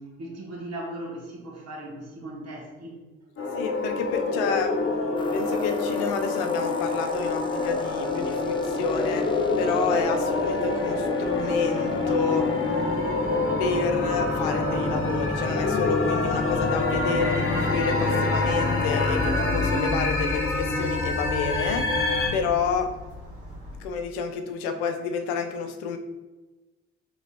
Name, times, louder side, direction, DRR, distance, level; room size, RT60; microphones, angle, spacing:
voice 1, 0.0-3.0, right 1 dB, 50° right, -1 dB, 1.3 m, -38 dB
sound 1, 3.4-22.3, left 3 dB, 40° left, 1.0 m, -26 dB
voice 2, 3.6-4.7 5.3-9.3 9.6-12.5 13.6-21.9 22.3-22.9 23.8-26.0, left 6 dB, 85° left, 6 dB, 0.5 m, -29 dB
sound 2, 5.2-19.8, left 2 dB, 15° left, 0.4 m, -33 dB
Motor vehicle (road) / Siren, 6.9-23.8, equal, 90° right, 1.4 m, -40 dB
3.4 x 2.8 x 4.3 m, 1.2 s
hypercardioid pair, 50°, 32 cm